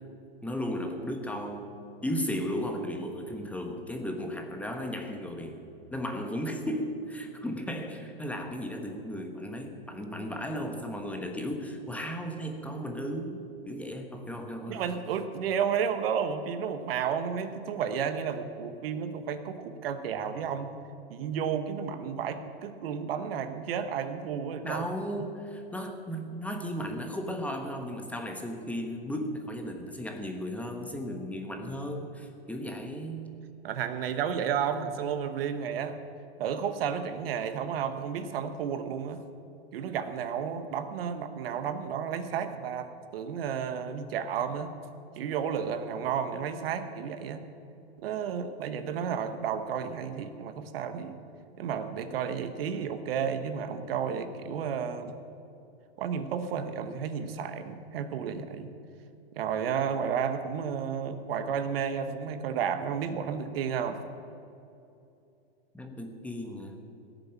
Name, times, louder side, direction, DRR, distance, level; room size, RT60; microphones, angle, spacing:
voice 1, 0.4-1.7 2.0-5.6 5.9-13.4 13.7-14.9 24.6-33.3 65.7-66.8, equal, 5° left, 4 dB, 1.2 m, -35 dB
voice 2, 14.7-20.7 21.1-24.8 33.6-36.0 36.4-39.2 39.7-44.7 45.2-47.4 48.0-51.2 51.6-55.1 56.0-58.7 59.4-64.0, right 7 dB, 65° right, 10 dB, 1.2 m, -32 dB
17.0 x 7.1 x 9.0 m, 2.8 s
hypercardioid pair, 125°, 32 cm